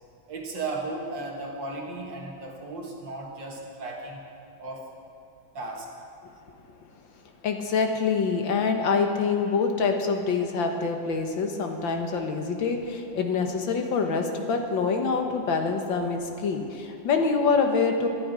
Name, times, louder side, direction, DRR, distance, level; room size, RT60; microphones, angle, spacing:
voice 1, 0.3-4.3 4.6-4.9 5.5-5.9, right 2 dB, 75° right, -1 dB, 2.2 m, -35 dB
voice 2, 7.4-18.1, left 5 dB, 80° left, 4 dB, 2.0 m, -25 dB
19.0 x 12.0 x 5.1 m, 2.7 s
omnidirectional pair, 2.1 m